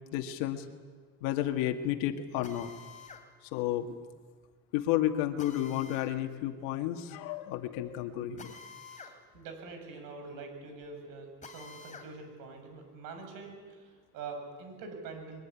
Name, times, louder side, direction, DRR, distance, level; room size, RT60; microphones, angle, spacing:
voice 1, 0.1-0.6 1.2-2.7 3.5-3.9 4.7-8.5, left 12 dB, 90° left, 5 dB, 2.1 m, -31 dB
Drill, 2.4-3.2 5.4-6.1 8.4-9.1 9.5-9.6 11.4-12.1, left 4 dB, 20° left, 3.5 m, -48 dB
voice 2, 8.9-15.4, right 4 dB, 75° right, 5 dB, 7.3 m, -45 dB
22.5 x 22.0 x 9.7 m, 1.5 s
cardioid pair, 115°, 34 cm